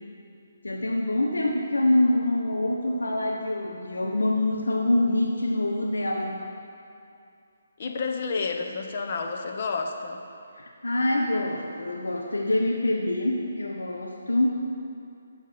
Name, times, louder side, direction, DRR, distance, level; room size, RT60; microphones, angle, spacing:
voice 1, 0.6-6.4 10.6-14.6, left 1 dB, 90° left, 1 dB, 1.0 m, -25 dB
voice 2, 7.8-10.2, left 4 dB, 45° left, 3 dB, 1.0 m, -30 dB
12.0 x 7.3 x 5.1 m, 2.5 s
hypercardioid pair, 155°, 0 cm